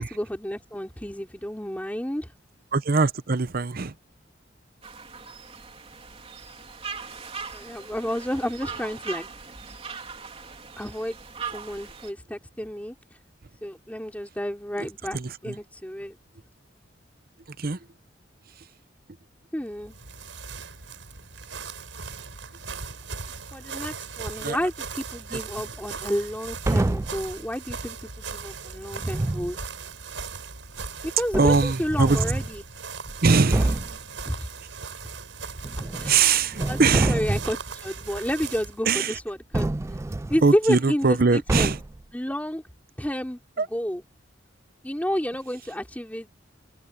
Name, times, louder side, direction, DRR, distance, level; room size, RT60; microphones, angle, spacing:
voice 1, 0.0-2.3 7.5-9.3 10.8-11.2 11.5-12.9 13.6-15.2 15.4-16.2 19.5-19.9 23.5-29.6 31.0-32.6 34.3-34.4 35.9-36.2 36.7-39.7 40.3-41.7 42.1-42.6 43.0-44.0 44.8-46.3, equal, 10° left, 3.6 m, -30 dB
voice 2, 2.7-3.9 14.8-14.9 15.1-15.6 17.5-17.8 24.4-24.6 25.3-25.4 31.4-32.2 33.2-33.8 36.0-37.2 38.9-39.2 40.4-41.8 43.6-43.7, right 4 dB, 50° right, 0.8 m, -22 dB
sound 1, 4.8-12.1, right 5 dB, 30° right, 3.7 m, -39 dB
sound 2, 19.7-38.8, right 5 dB, 85° right, 5.3 m, -38 dB
sound 3, 26.6-27.3 28.9-29.5 30.8-30.9 31.3-32.5 33.1-33.2 33.5-34.0 35.6-36.2 36.5-37.6 39.5-40.5 41.5-42.0, right 2 dB, 15° right, 0.3 m, -27 dB
open air
head